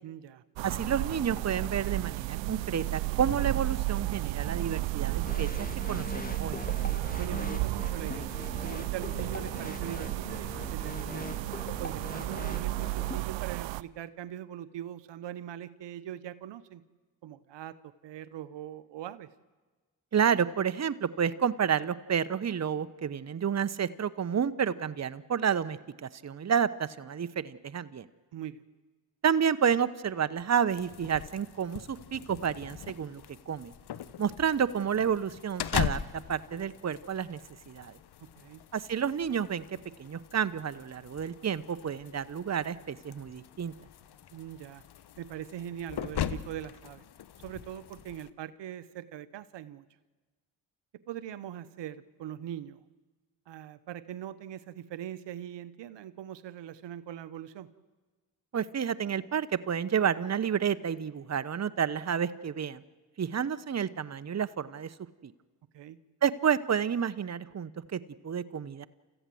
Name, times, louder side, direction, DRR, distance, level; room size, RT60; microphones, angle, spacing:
voice 1, 0.0-0.4 7.2-11.2 11.8-16.8 17.2-17.7 18.0-19.3 28.3-28.6 38.4-38.6 44.3-44.8 45.2-47.0 47.4-49.8 51.1-52.8 53.5-57.7 65.7-66.0, right 11 dB, 70° right, 14 dB, 1.0 m, -41 dB
voice 2, 0.6-6.6 20.1-28.1 29.2-33.7 34.2-36.0 36.3-37.4 37.7-38.0 38.7-43.7 58.5-62.8 63.2-64.9 65.2-65.3 66.2-68.9, right 8 dB, 35° right, 14 dB, 1.0 m, -30 dB
sound 1, 0.6-13.8, right 20 dB, 90° right, 0.6 m, -33 dB
sound 2, 5.2-13.2, left 2 dB, 20° left, 1.7 m, -41 dB
sound 3, 30.7-48.3, left 10 dB, 60° left, 1.1 m, -40 dB
29.0 x 15.0 x 7.8 m, 1.3 s
supercardioid pair, 50°, 44 cm